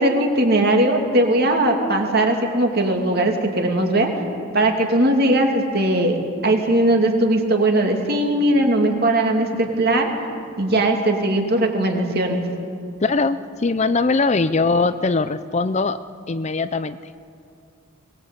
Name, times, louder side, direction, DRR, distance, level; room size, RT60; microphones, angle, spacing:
voice 1, 0.0-4.2 4.5-10.1 10.6-12.5, right 1 dB, 45° right, 2 dB, 2.7 m, -19 dB
voice 2, 13.0-16.0 16.3-17.0, left 3 dB, 30° left, 12 dB, 0.5 m, -21 dB
22.0 x 19.5 x 8.3 m, 2.3 s
head